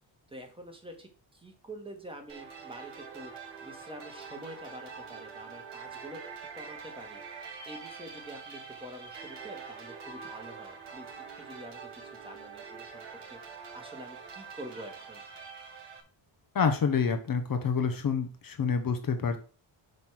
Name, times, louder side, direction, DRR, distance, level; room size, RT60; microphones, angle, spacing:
voice 1, 0.3-3.3 3.6-6.2 6.5-7.2 7.7-11.9 12.2-15.2, right 1 dB, 10° right, 2 dB, 1.8 m, -46 dB
sound 1, 2.3-16.0, right 5 dB, 60° right, 2.0 m, -45 dB
voice 2, 16.5-19.4, left 6 dB, 45° left, 6 dB, 0.9 m, -28 dB
5.9 x 5.3 x 6.2 m, 0.39 s
wide cardioid pair, 150°, 47 cm